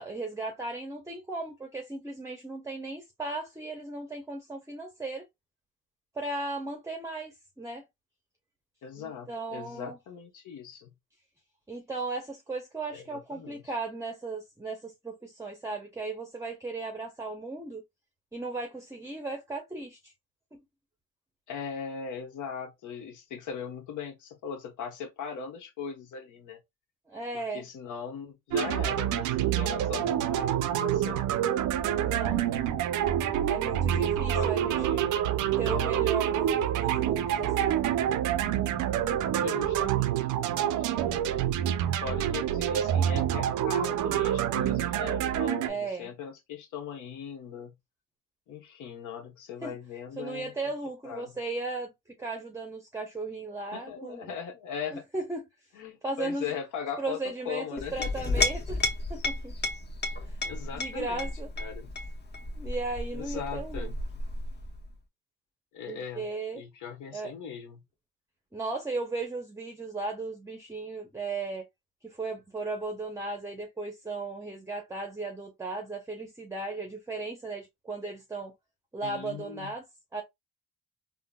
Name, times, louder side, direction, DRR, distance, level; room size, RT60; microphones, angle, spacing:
voice 1, 0.0-5.2 6.1-7.8 9.0-10.0 11.7-17.8 18.3-20.1 20.5-20.6 27.1-27.6 32.0-32.5 33.5-35.0 35.6-37.8 45.6-46.1 49.6-49.8 50.2-51.9 52.2-54.4 55.1-55.4 56.0-56.5 57.0-58.8 59.1-59.5 60.2-60.4 60.7-61.5 62.6-63.9 65.9-66.6 67.1-67.3 68.5-71.7 72.0-78.5 78.9-79.9 80.1-80.2, right 3 dB, 10° right, 0.6 m, -36 dB
voice 2, 8.8-10.9 12.9-13.6 21.5-26.6 27.3-31.3 34.2-35.2 35.6-36.0 39.4-41.4 42.0-47.8 48.5-50.5 51.0-51.3 53.7-55.0 55.7-58.1 60.4-61.3 61.6-61.9 63.1-64.0 65.7-67.8 79.0-79.7, left 7 dB, 80° left, 1.0 m, -39 dB
sound 1, 28.5-45.7, right 11 dB, 85° right, 0.5 m, -27 dB
sound 2, 29.2-39.9, equal, 15° left, 1.2 m, -46 dB
Chink clink, 57.8-64.9, left 2 dB, 35° left, 0.7 m, -33 dB
3.7 x 2.0 x 2.2 m
cardioid pair, 90°, 30 cm